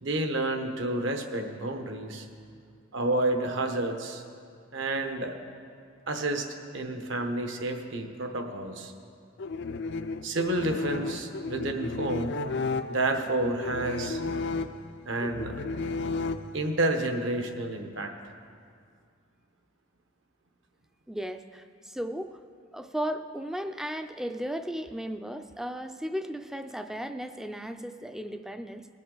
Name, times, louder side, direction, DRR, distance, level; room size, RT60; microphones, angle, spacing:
voice 1, 0.0-2.3 2.9-4.2 4.7-5.3 6.1-8.9 10.2-12.4 12.9-14.2 15.1-15.6 16.5-18.3, right 2 dB, 65° right, 5 dB, 1.0 m, -30 dB
sound 1, 9.4-16.9, left 3 dB, 60° left, 0.4 m, -33 dB
voice 2, 21.1-22.4 22.7-28.9, equal, ahead, 8 dB, 0.4 m, -35 dB
19.5 x 7.7 x 3.9 m, 2.2 s
head